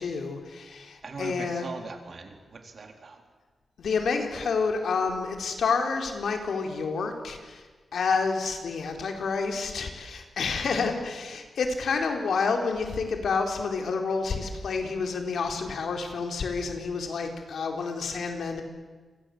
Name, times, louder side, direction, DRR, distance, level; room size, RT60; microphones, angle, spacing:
voice 1, 0.0-1.7 3.8-7.6 7.9-18.6, left 4 dB, 85° left, 4 dB, 4.2 m, -29 dB
voice 2, 1.0-3.2, right 4 dB, 55° right, 5 dB, 4.1 m, -40 dB
28.5 x 24.5 x 8.0 m, 1.4 s
cardioid pair, 85°, 0 cm